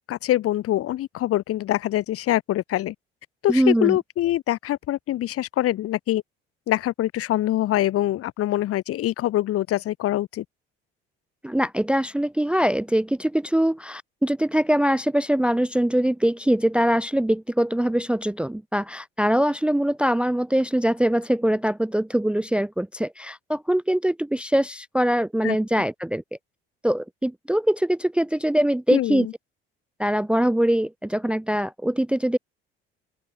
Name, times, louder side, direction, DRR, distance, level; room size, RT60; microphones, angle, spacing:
voice 1, 0.1-2.9 3.4-6.2 6.7-10.4 25.4-25.6 28.9-29.3, left 14 dB, 50° left, 1.3 m, -24 dB
voice 2, 3.5-4.0 11.4-26.2 26.8-29.3 30.0-32.4, right 1 dB, 5° right, 0.6 m, -23 dB
open air
figure-of-eight pair, 55°, 30 cm